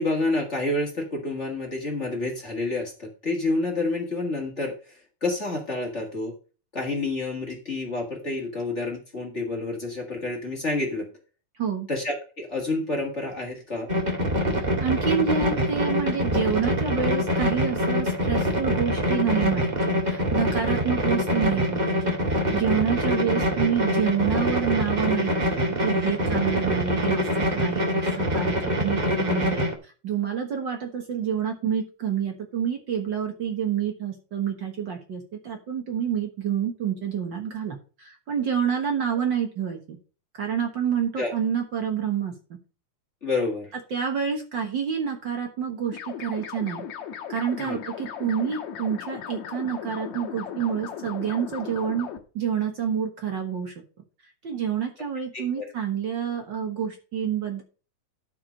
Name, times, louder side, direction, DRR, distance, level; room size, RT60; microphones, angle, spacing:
voice 1, 0.0-6.3 6.7-11.1 11.9-13.9 41.2-41.3 43.2-43.7 47.6-47.8 55.3-55.6, left 2 dB, 30° left, 0 dB, 1.7 m, -29 dB
sound 1, 13.9-29.7, equal, 20° right, 1.2 m, -25 dB
voice 2, 14.6-40.0 40.4-42.3 43.9-46.9 47.3-52.1 52.3-53.8 54.4-57.6, right 8 dB, 50° right, 3 dB, 1.5 m, -28 dB
sound 2, 45.9-52.2, left 8 dB, 70° left, 2.6 m, -37 dB
12.5 x 4.8 x 5.1 m, 0.36 s
omnidirectional pair, 3.4 m